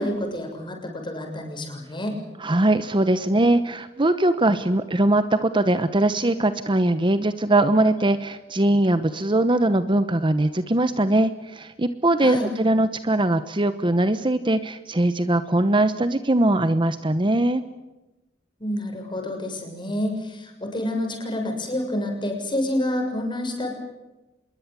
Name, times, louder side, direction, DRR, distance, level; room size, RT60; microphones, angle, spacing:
voice 1, 0.0-2.2 12.2-12.5 18.6-23.7, left 1 dB, 25° left, 3 dB, 6.9 m, -28 dB
voice 2, 2.4-17.6, right 1 dB, 25° right, 11 dB, 1.0 m, -21 dB
26.5 x 21.5 x 8.4 m, 1.0 s
head